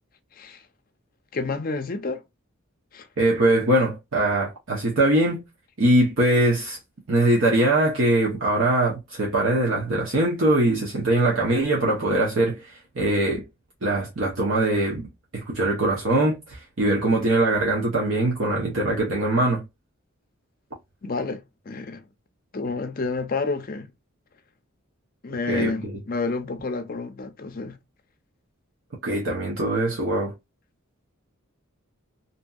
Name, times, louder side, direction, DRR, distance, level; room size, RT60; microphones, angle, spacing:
voice 1, 0.3-0.6 1.3-2.2 2.9-3.1 21.0-22.0 22.5-23.9 25.2-27.8, left 3 dB, 40° left, 0.5 m, -29 dB
voice 2, 3.2-5.4 5.8-6.8 7.1-13.4 13.8-15.1 15.3-19.6 25.5-25.7 29.0-30.3, right 1 dB, 60° right, 0.7 m, -22 dB
2.7 x 2.6 x 2.3 m
head